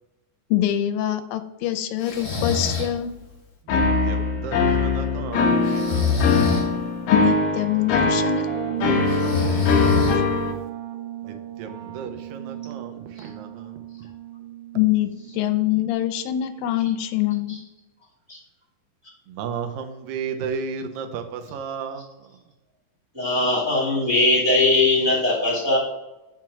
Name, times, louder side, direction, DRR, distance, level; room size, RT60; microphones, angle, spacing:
voice 1, 0.5-3.1 7.1-8.5 14.7-15.1 15.3-17.6, left 13 dB, 90° left, 9 dB, 2.4 m, -24 dB
Breathing, 2.0-2.9 5.6-6.7 9.1-10.5, left 5 dB, 45° left, 2.4 m, -24 dB
sound 1, 3.7-10.5, left 3 dB, 65° left, 2.0 m, -22 dB
voice 2, 3.7-6.3 11.2-13.8 19.3-22.3, right 6 dB, 80° right, 7 dB, 2.4 m, -34 dB
sound 2, 8.5-16.1, right 10 dB, 55° right, 1.8 m, -35 dB
voice 3, 23.1-25.8, left 2 dB, 20° right, -6 dB, 0.7 m, -20 dB
5.9 x 4.6 x 4.7 m, 1.0 s
omnidirectional pair, 3.9 m